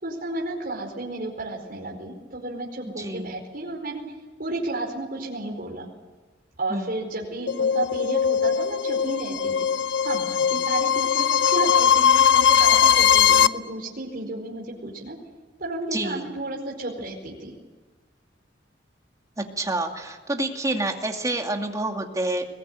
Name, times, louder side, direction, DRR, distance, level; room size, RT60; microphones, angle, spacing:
voice 1, 0.0-4.0 4.4-5.9 6.6-9.5 10.0-15.2 15.6-17.5, right 2 dB, 50° right, -1 dB, 4.8 m, -32 dB
voice 2, 3.0-3.3 6.7-6.9 15.9-16.3 19.4-22.5, right 2 dB, 20° right, 3 dB, 2.5 m, -28 dB
sound 1, 7.5-13.5, left 8 dB, 70° left, 0.7 m, -20 dB
22.0 x 20.5 x 9.3 m, 1.2 s
head